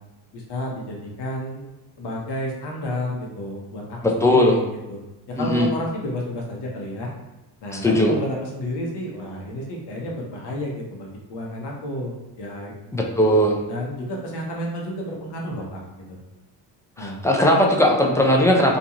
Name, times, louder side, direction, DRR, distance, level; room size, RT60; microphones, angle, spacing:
voice 1, 0.3-1.6 2.0-4.6 4.9-5.0 5.3-7.1 7.6-12.7 13.7-15.8 16.1-16.2 17.0-17.2, left 1 dB, 60° left, -1 dB, 1.0 m, -31 dB
voice 2, 4.0-4.6 5.4-5.7 7.7-8.1 12.9-13.6 17.0-18.8, left 1 dB, 5° left, 0 dB, 0.5 m, -18 dB
2.5 x 2.4 x 2.9 m, 1.0 s
supercardioid pair, 60°, 47 cm